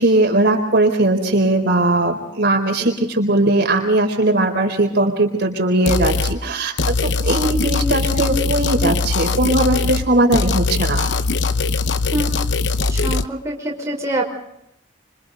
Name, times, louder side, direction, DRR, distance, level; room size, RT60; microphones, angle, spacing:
voice 1, 0.0-11.1, right 2 dB, 60° right, 2 dB, 4.0 m, -19 dB
sound 1, 5.9-6.4 6.8-10.1 10.3-13.2, left 4 dB, 65° left, 0.9 m, -21 dB
voice 2, 12.9-14.2, right 1 dB, 15° right, -2 dB, 5.4 m, -25 dB
27.5 x 25.5 x 4.0 m, 0.78 s
head